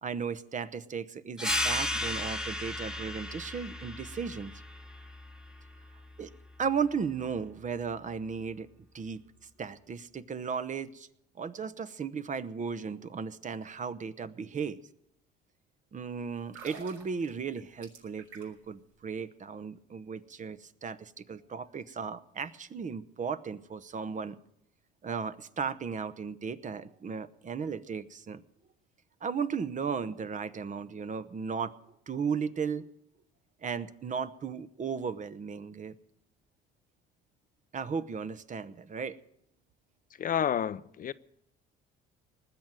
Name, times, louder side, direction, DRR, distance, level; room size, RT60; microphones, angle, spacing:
voice 1, 0.0-4.5 6.2-6.3 6.6-8.7 8.9-9.2 9.6-11.1 11.4-14.8 15.9-24.4 25.0-28.4 29.2-31.7 32.1-32.9 33.6-35.9 37.7-39.2, right 6 dB, 35° right, 0.9 m, -35 dB
sound 1, 1.4-6.5, left 1 dB, 5° right, 1.2 m, -35 dB
sound 2, 16.4-18.7 19.0-19.2, right 5 dB, 75° right, 6.1 m, -49 dB
voice 2, 40.2-41.1, left 9 dB, 40° left, 0.6 m, -30 dB
19.5 x 7.5 x 9.1 m
supercardioid pair, 85°, 21 cm